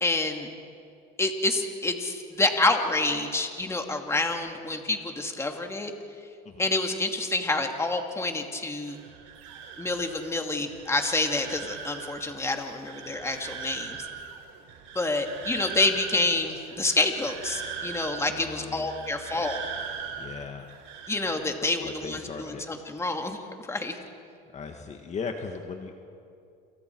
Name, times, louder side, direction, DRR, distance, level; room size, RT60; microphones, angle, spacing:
voice 1, 0.0-0.5 1.2-5.9 6.6-9.0 9.8-14.1 14.9-19.6 21.1-24.0, left 2 dB, 15° left, 4 dB, 2.4 m, -28 dB
sound 1, 8.8-21.4, right 6 dB, 80° right, 4.6 m, -40 dB
voice 2, 18.3-19.0 20.2-20.7 21.8-22.7 24.5-26.1, left 5 dB, 35° left, 4 dB, 1.8 m, -38 dB
29.0 x 27.5 x 4.7 m, 2.5 s
supercardioid pair, 110°, 21 cm